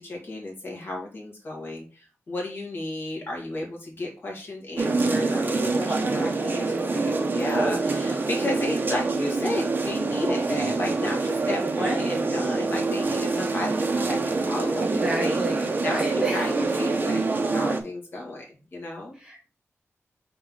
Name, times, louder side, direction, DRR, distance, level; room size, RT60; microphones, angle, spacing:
voice 1, 0.0-15.4 15.8-17.2 17.5-18.4 18.7-19.2, left 2 dB, 50° left, -1 dB, 2.2 m, -33 dB
sound 1, 4.8-17.8, right 3 dB, 40° right, 0.9 m, -26 dB
voice 2, 6.1-6.6 11.8-12.1 14.8-16.5 19.2-19.5, right 1 dB, 15° right, -2 dB, 2.0 m, -32 dB
5.6 x 4.3 x 3.9 m, 0.34 s
wide cardioid pair, 175°, 5 cm